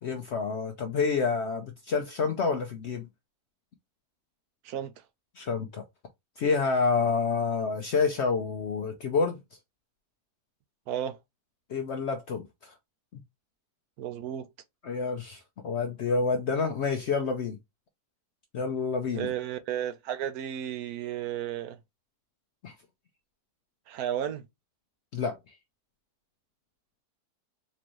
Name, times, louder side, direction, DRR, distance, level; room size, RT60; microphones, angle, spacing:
voice 1, 0.0-3.1 5.4-5.8 6.4-9.4 11.7-12.7 14.8-17.6 18.5-19.3 22.6-22.7 25.1-25.4, left 4 dB, 65° left, 0.7 m, -28 dB
voice 2, 10.9-11.2 14.0-14.5 19.1-21.8 23.9-24.4, right 10 dB, 75° right, 1.0 m, -33 dB
4.3 x 2.6 x 3.0 m
omnidirectional pair, 1.7 m